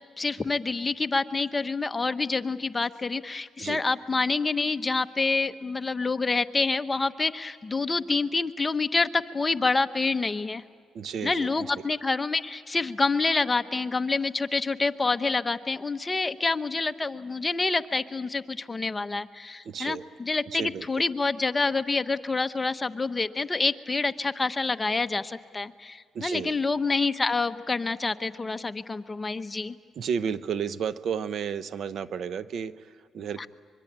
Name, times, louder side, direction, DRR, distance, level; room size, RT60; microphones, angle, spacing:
voice 1, 0.2-10.6 11.2-29.7 33.4-33.5, left 3 dB, 20° left, 10 dB, 0.9 m, -27 dB
voice 2, 10.9-11.7 19.6-20.0 20.5-20.9 26.1-26.5 30.0-33.5, right 7 dB, 65° right, 14 dB, 0.8 m, -32 dB
24.5 x 23.0 x 8.7 m, 2.1 s
cardioid pair, 90°, 0 cm